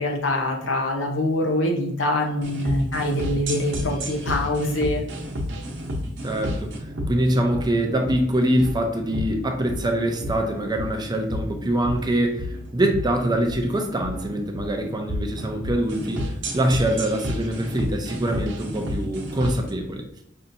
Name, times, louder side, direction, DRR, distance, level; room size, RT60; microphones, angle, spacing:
voice 1, 0.0-5.0, left 1 dB, 75° left, 2 dB, 0.8 m, -24 dB
sound 1, 2.4-19.7, equal, 65° right, 0.9 m, -31 dB
voice 2, 6.2-6.7 7.1-20.0, right 1 dB, 20° right, 3 dB, 0.5 m, -24 dB
5.4 x 2.7 x 2.6 m, 0.77 s
head